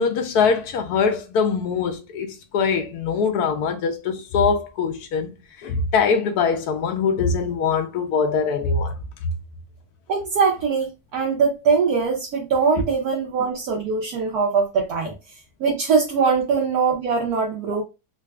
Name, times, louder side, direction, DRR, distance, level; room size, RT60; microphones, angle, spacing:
voice 1, 0.0-9.0, left 5 dB, 80° left, 1.1 m, -22 dB
voice 2, 10.1-15.1 15.6-17.8, right 5 dB, 70° right, 1.2 m, -22 dB
3.9 x 2.4 x 2.2 m
omnidirectional pair, 1.7 m